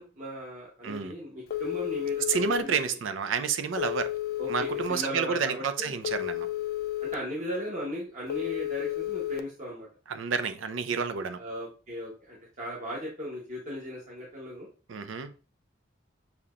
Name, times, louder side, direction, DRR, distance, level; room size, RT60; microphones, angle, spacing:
voice 1, 0.0-3.0 4.4-6.0 7.0-9.9 11.3-14.7, equal, 40° right, 1.1 m, -37 dB
Telephone, 1.5-2.6 3.8-4.9 6.0-7.1 8.3-9.4, left 14 dB, 50° left, 0.4 m, -32 dB
voice 2, 2.3-4.1 4.5-6.5 10.1-11.4 14.9-15.3, right 6 dB, 85° right, 0.5 m, -30 dB
6.8 x 2.8 x 2.5 m
head